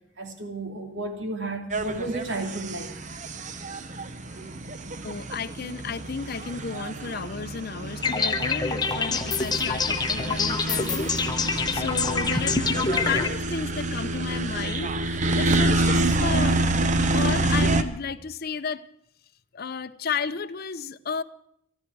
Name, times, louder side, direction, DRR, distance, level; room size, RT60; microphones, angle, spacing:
voice 1, 0.2-3.0, right 2 dB, 70° right, 2.6 m, -32 dB
sound 1, 1.7-17.8, right 2 dB, 40° right, 0.9 m, -27 dB
voice 2, 5.0-12.6 12.9-16.8 17.1-18.9 19.5-21.2, left 5 dB, 50° left, 0.6 m, -33 dB
sound 2, 8.0-13.3, left 4 dB, 20° left, 0.9 m, -26 dB
23.0 x 13.5 x 4.7 m
head